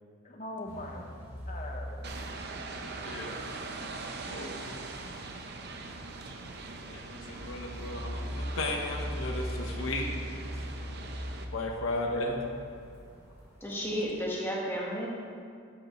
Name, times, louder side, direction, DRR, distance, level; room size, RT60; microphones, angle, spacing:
voice 1, 0.2-2.1, left 1 dB, 35° left, 1 dB, 1.1 m, -42 dB
sound 1, 0.6-14.2, equal, 10° right, 2.3 m, -41 dB
sound 2, 2.0-11.4, right 3 dB, 50° right, 0.7 m, -42 dB
voice 2, 3.0-3.4 4.2-4.8 6.9-10.4 11.5-12.4, left 2 dB, 70° left, 1 dB, 1.0 m, -35 dB
voice 3, 11.9-12.4 13.6-15.1, equal, 10° left, -4 dB, 1.4 m, -33 dB
12.0 x 7.9 x 3.1 m, 2.3 s
head